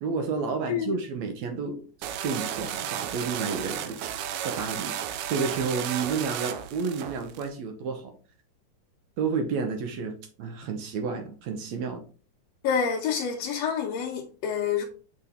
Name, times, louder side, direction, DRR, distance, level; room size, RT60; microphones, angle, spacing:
voice 1, 0.0-4.0 4.4-4.9 5.3-8.1 9.2-12.0, right 5 dB, 70° right, 2.1 m, -31 dB
sound 1, 2.0-7.5, right 10 dB, 85° right, 2.1 m, -33 dB
voice 2, 12.6-14.8, left 7 dB, 70° left, 1.8 m, -27 dB
6.8 x 4.9 x 3.6 m
omnidirectional pair, 3.6 m